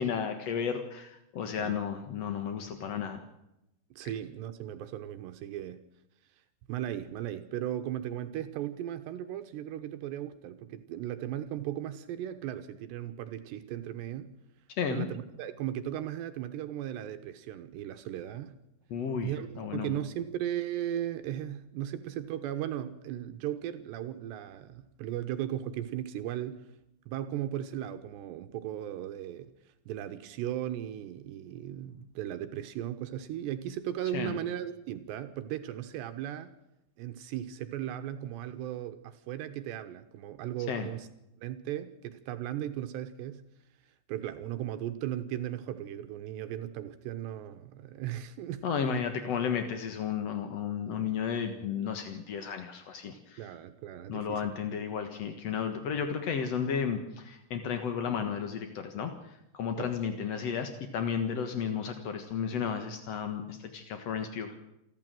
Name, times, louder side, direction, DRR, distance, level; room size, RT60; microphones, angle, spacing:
voice 1, 0.0-3.2 14.8-15.1 18.9-19.3 19.6-19.9 34.1-34.4 40.7-40.9 48.6-53.4 54.1-59.1 59.5-64.6, left 7 dB, 65° left, 7 dB, 1.7 m, -33 dB
voice 2, 4.0-5.8 6.7-14.3 14.9-18.6 19.2-26.7 27.1-29.5 29.9-36.5 37.0-41.1 41.4-43.4 44.1-48.7 48.9-49.1 53.4-54.6 59.8-59.9, right 11 dB, 75° right, 8 dB, 3.1 m, -37 dB
28.5 x 12.5 x 7.7 m, 0.85 s
omnidirectional pair, 5.2 m